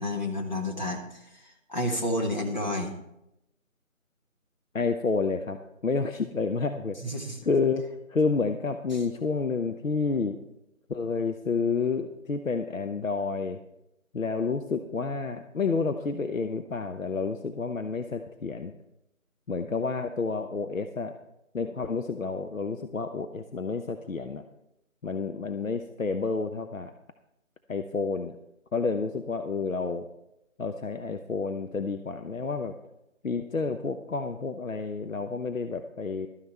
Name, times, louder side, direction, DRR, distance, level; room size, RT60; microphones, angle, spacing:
voice 1, 0.0-2.9 7.0-7.4 8.9-9.0, left 1 dB, 35° left, 0 dB, 1.6 m, -31 dB
voice 2, 4.7-5.6 5.8-7.1 7.4-7.8 8.1-10.4 10.9-13.6 14.1-18.7 19.5-21.2 21.5-24.4 25.0-26.9 27.7-28.4 28.7-30.1 30.6-32.7 33.2-36.3, left 4 dB, 70° left, 7 dB, 0.8 m, -29 dB
12.5 x 9.8 x 4.3 m, 0.86 s
figure-of-eight pair, 170°, 41 cm